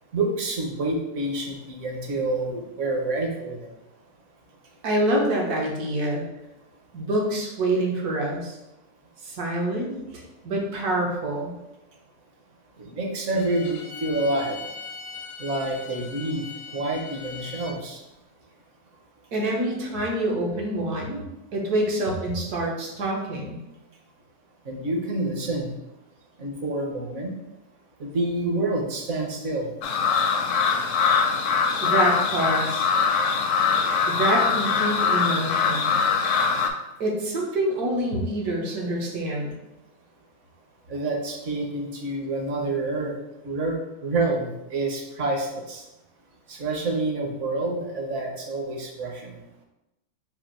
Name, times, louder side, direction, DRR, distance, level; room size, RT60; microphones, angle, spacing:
voice 1, 0.1-3.8 12.8-14.8 15.4-18.0 24.6-25.7 26.4-27.3 28.0-29.7 36.0-36.2 40.9-43.2 43.4-45.9 46.5-49.4, right 2 dB, 55° right, 1 dB, 1.0 m, -28 dB
voice 2, 4.8-6.2 6.9-8.6 9.2-11.5 19.3-21.2 21.5-23.6 31.8-32.9 34.1-35.9 37.0-39.5, right 1 dB, 75° right, -1 dB, 1.5 m, -26 dB
Bowed string instrument, 13.3-17.8, left 5 dB, 90° left, 1.2 m, -40 dB
sound 1, 29.8-36.7, left 6 dB, 70° left, 0.8 m, -22 dB
4.3 x 2.5 x 4.4 m, 0.92 s
omnidirectional pair, 1.7 m